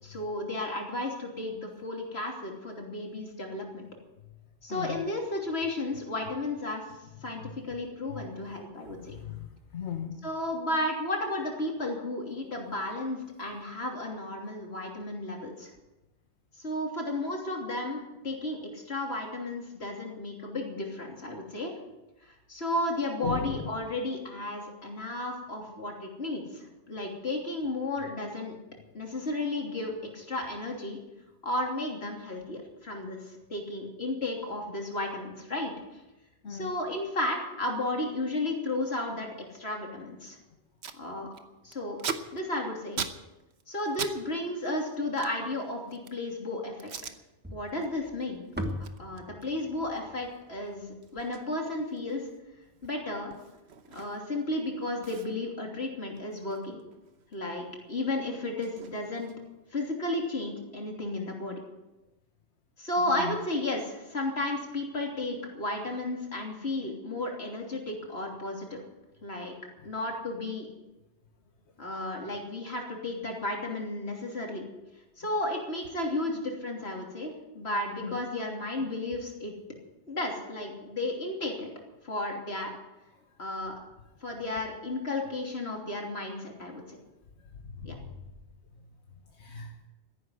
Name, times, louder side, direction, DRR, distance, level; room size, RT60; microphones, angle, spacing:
voice 1, 0.0-3.9 4.6-6.8 7.2-7.4 7.7-9.1 10.2-15.7 16.6-21.7 22.2-28.6 28.9-31.0 31.4-36.0 36.5-39.3 39.5-40.4 41.0-41.3 41.6-42.0 42.3-43.0 43.7-46.9 47.5-48.4 49.0-52.3 52.8-53.3 53.9-56.8 57.3-59.3 59.7-61.6 62.8-68.8 69.2-69.5 69.8-70.7 71.8-74.7 75.2-79.5 80.1-81.7 82.0-82.7 83.4-83.7 84.2-87.0 87.8-88.0, left 2 dB, 70° left, 0 dB, 3.3 m, -33 dB
voice 2, 9.1-9.5 9.7-10.2 20.4-20.5 23.2-23.6 36.4-36.7 63.1-63.4 78.0-78.2 87.6-88.1 89.4-89.7, left 7 dB, 85° left, 3 dB, 1.6 m, -37 dB
Packing tape duct tape, 40.3-40.4 40.5-41.0 41.3-44.2 44.4-46.3 46.8-47.2 47.6-47.9 48.2-54.4 54.7-54.8 55.0-57.4 57.7-59.6, right 6 dB, 75° right, 1.2 m, -42 dB
sound 1, 47.4-51.7, equal, 10° right, 1.3 m, -40 dB
14.0 x 11.0 x 8.1 m, 1.0 s
omnidirectional pair, 1.1 m